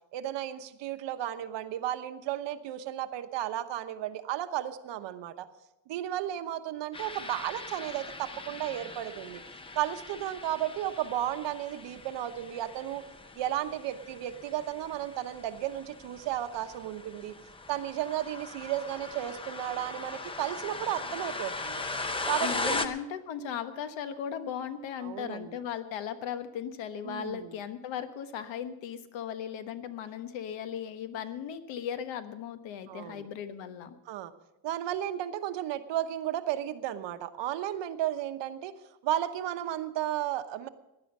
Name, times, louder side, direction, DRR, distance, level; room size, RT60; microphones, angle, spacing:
voice 1, 0.1-5.5 5.9-9.4 9.7-13.0 13.3-17.3 17.7-21.8 22.3-22.8 25.0-25.6 27.0-27.5 32.9-33.3 34.0-34.3 34.6-38.7 39.0-40.7, right 12 dB, 70° right, 9 dB, 1.1 m, -34 dB
sound 1, 6.9-22.8, left 3 dB, 15° left, 0.5 m, -39 dB
voice 2, 22.4-33.9, left 8 dB, 80° left, 9 dB, 1.3 m, -37 dB
16.5 x 10.5 x 5.5 m, 0.93 s
cardioid pair, 180°, 45 cm